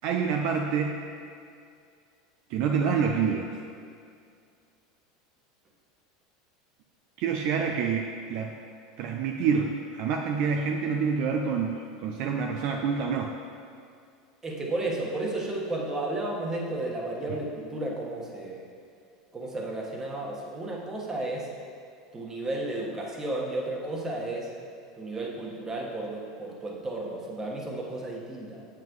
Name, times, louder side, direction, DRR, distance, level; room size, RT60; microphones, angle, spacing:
voice 1, 0.0-1.0 2.5-3.6 7.2-8.5 9.0-13.3, right 6 dB, 60° right, 2 dB, 0.5 m, -27 dB
voice 2, 14.4-18.7 19.3-21.5 22.1-24.5 24.9-28.7, right 2 dB, 20° right, -2 dB, 1.4 m, -33 dB
7.5 x 7.3 x 3.1 m, 2.3 s
hypercardioid pair, 95°, 2 cm